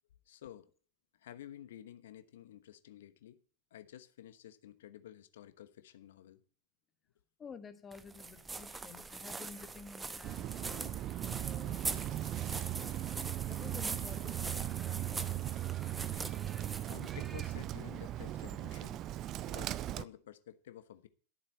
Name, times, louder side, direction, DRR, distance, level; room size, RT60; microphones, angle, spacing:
voice 1, 0.3-0.7 1.2-3.4 3.7-6.4 16.9-19.2 19.5-21.1, left 11 dB, 60° left, 1.1 m, -52 dB
voice 2, 7.4-11.0 11.3-12.9 13.5-15.5, left 5 dB, 20° left, 1.4 m, -52 dB
sound 1, 7.9-17.8, right 3 dB, 10° right, 0.9 m, -43 dB
Bird, 10.2-20.0, right 13 dB, 35° right, 0.5 m, -38 dB
12.5 x 7.1 x 8.4 m
figure-of-eight pair, 90°, 0 cm